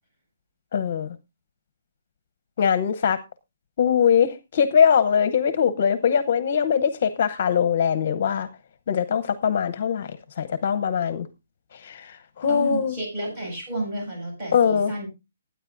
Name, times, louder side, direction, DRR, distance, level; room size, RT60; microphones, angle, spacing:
voice 1, 0.7-1.1 2.6-3.2 3.8-8.5 8.9-11.3 11.7-13.0 14.5-14.9, left 7 dB, 40° left, 0.8 m, -22 dB
voice 2, 12.5-15.1, right 1 dB, 20° right, 7.8 m, -31 dB
20.0 x 9.5 x 2.6 m
hypercardioid pair, 175°, 0 cm